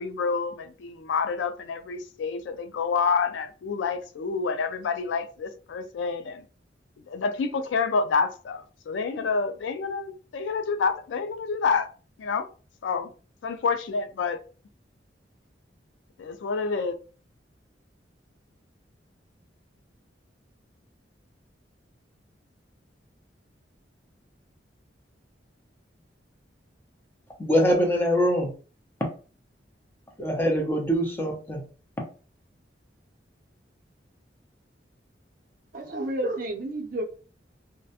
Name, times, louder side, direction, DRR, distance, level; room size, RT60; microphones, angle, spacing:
voice 1, 0.0-6.4 7.1-11.9 12.2-12.5 12.8-13.1 13.4-14.4 16.2-17.0, left 5 dB, 85° left, 0.3 m, -28 dB
voice 2, 27.4-28.5 30.2-31.6, equal, 10° left, 0.6 m, -23 dB
voice 3, 35.7-37.0, right 1 dB, 50° right, 0.5 m, -30 dB
2.3 x 2.1 x 2.7 m
head